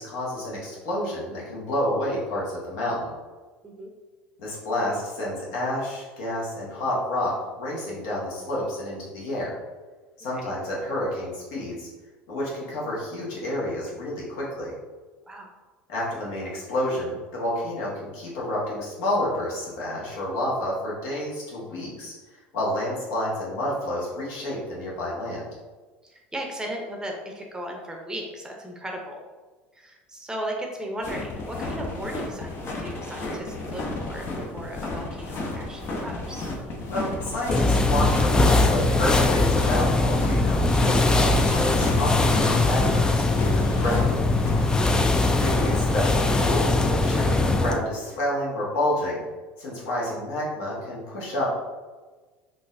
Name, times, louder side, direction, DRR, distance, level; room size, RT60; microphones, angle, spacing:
voice 1, 0.0-3.1 4.4-9.6 10.2-11.9 12.3-14.7 15.9-22.1 22.5-25.4 36.9-44.1 45.4-49.2 49.6-51.5, left 1 dB, 70° left, -5 dB, 1.2 m, -29 dB
voice 2, 26.0-29.2 29.7-36.5 44.6-45.0, right 1 dB, 15° right, 1 dB, 0.7 m, -36 dB
sound 1, 31.0-46.5, left 2 dB, 45° left, 0.7 m, -33 dB
sound 2, 37.5-47.8, left 2 dB, 15° left, 0.3 m, -21 dB
3.8 x 2.6 x 2.6 m, 1.3 s
hypercardioid pair, 80°, 5 cm